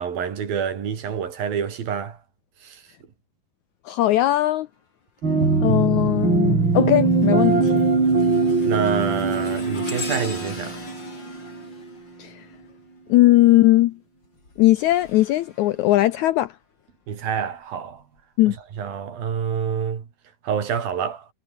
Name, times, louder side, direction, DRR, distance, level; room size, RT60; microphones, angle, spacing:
voice 1, 0.0-2.2 2.6-2.8 8.6-10.8 17.1-18.0 18.5-20.1 20.4-21.3, right 7 dB, 80° right, 5.0 m, -27 dB
voice 2, 3.9-4.7 5.6-7.7 12.2-12.5 13.1-14.0 14.6-16.5 18.4-18.5, left 16 dB, 80° left, 1.7 m, -19 dB
sound 1, 5.2-11.8, right 4 dB, 35° right, 4.9 m, -21 dB
sound 2, 5.3-5.7 6.2-13.0 14.2-16.4 17.1-17.3 18.2-18.3, left 3 dB, 30° left, 5.8 m, -40 dB
omnidirectional pair, 4.1 m